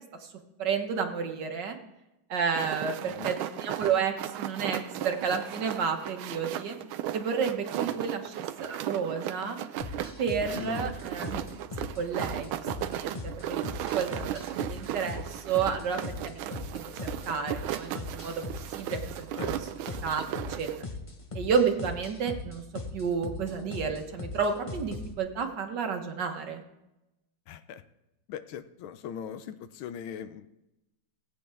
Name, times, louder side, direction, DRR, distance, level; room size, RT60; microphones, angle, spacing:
voice 1, 0.6-1.7 2.3-6.8 7.1-8.3 8.6-9.6 10.2-11.4 12.0-13.6 13.9-18.3 18.7-19.5 20.0-20.2 20.6-20.7 21.3-22.6 22.9-26.6, right 6 dB, 60° right, 5 dB, 1.6 m, -31 dB
sound 1, 2.5-20.8, right 11 dB, 85° right, 1.4 m, -36 dB
voice 2, 3.0-3.3 7.8-8.0 10.5-10.9 19.4-19.6 27.5-27.8 28.3-30.5, left 8 dB, 80° left, 12 dB, 1.4 m, -40 dB
sound 2, 9.8-25.2, left 3 dB, 45° left, 0.4 m, -40 dB
17.5 x 8.5 x 3.4 m, 0.94 s
omnidirectional pair, 2.3 m